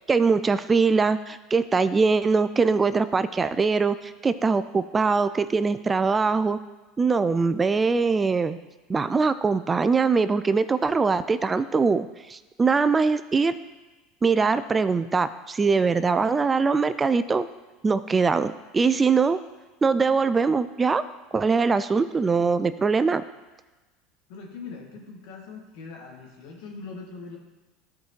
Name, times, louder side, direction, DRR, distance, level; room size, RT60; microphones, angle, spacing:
voice 1, 0.1-6.6 7.0-8.6 8.9-13.5 14.2-17.5 17.8-19.4 19.8-21.0 21.3-23.2, right 4 dB, 20° right, 13 dB, 0.3 m, -22 dB
voice 2, 24.3-27.4, left 4 dB, 75° left, -1 dB, 2.0 m, -41 dB
14.0 x 4.8 x 3.2 m, 1.2 s
supercardioid pair, 100°, 0 cm